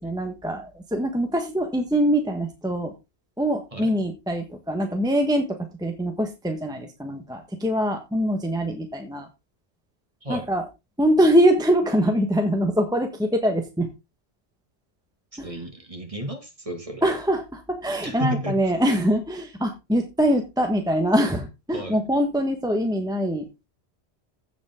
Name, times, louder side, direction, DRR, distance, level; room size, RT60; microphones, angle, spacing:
voice 1, 0.0-2.9 3.4-9.3 10.3-10.6 11.0-13.9 15.4-15.5 17.0-23.7, equal, 5° right, 4 dB, 1.3 m, -23 dB
voice 2, 15.3-17.1 18.0-18.6 21.7-22.0, right 1 dB, 30° right, 4 dB, 2.3 m, -32 dB
15.5 x 5.3 x 3.7 m, 0.25 s
omnidirectional pair, 1.1 m